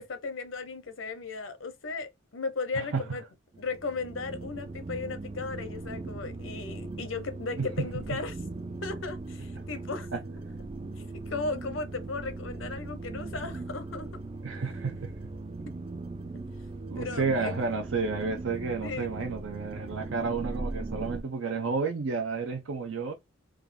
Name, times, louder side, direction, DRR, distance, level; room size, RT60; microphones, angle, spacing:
voice 1, 0.0-3.2 3.6-8.4 8.8-10.1 11.3-14.1 17.0-17.7 18.8-19.1, left 4 dB, 75° left, 0.8 m, -36 dB
voice 2, 2.7-3.2 7.6-7.9 8.1-8.2 9.5-9.6 10.1-10.2 14.4-15.1 16.9-23.1, right 4 dB, 75° right, 0.6 m, -31 dB
sound 1, 3.5-21.2, right 2 dB, 25° right, 0.3 m, -39 dB
3.8 x 2.3 x 3.5 m
head